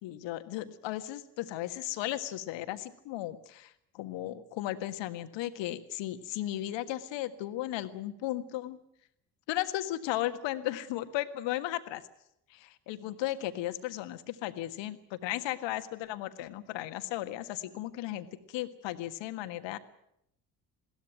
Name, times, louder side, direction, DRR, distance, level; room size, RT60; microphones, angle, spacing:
voice 1, 0.0-8.8 9.5-12.0 12.5-19.8, left 14 dB, 60° left, 10 dB, 1.7 m, -35 dB
21.0 x 17.5 x 9.1 m, 0.76 s
figure-of-eight pair, 50°, 49 cm